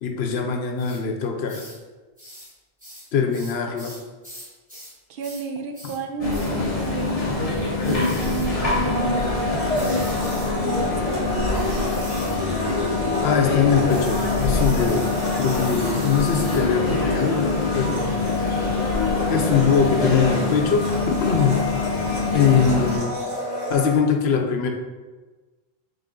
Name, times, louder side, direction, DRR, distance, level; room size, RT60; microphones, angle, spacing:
voice 1, 0.0-1.6 3.1-4.0 13.2-15.1 15.4-18.2 19.3-21.6 22.3-23.2 23.7-24.7, left 6 dB, 80° left, 3 dB, 0.9 m, -22 dB
sound 1, 0.8-1.0 1.5-1.8 2.2-2.5 2.8-5.0 5.2-5.5 5.7-6.0 6.3-6.6 7.8-8.5 9.7-10.5 11.5-12.4 13.9-16.7, equal, 10° right, 1.5 m, -42 dB
voice 2, 5.1-7.5 8.2-9.3 10.6-11.8, right 5 dB, 60° right, 4 dB, 0.7 m, -32 dB
sound 2, 6.2-23.0, left 3 dB, 40° left, 0.9 m, -24 dB
Domestic sounds home sounds, 8.8-24.0, left 2 dB, 45° right, 1.2 m, -31 dB
4.0 x 3.5 x 3.6 m, 1.3 s
omnidirectional pair, 1.1 m